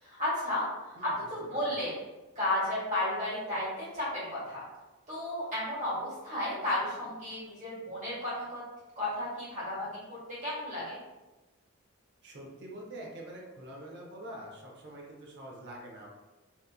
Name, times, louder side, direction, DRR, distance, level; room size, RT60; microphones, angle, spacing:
voice 1, 0.0-1.9 2.3-4.6 5.1-8.6 9.0-11.0, left 1 dB, 35° right, -9 dB, 1.5 m, -33 dB
voice 2, 12.2-16.1, right 1 dB, 55° right, -2 dB, 0.6 m, -45 dB
2.8 x 2.4 x 2.3 m, 1.1 s
head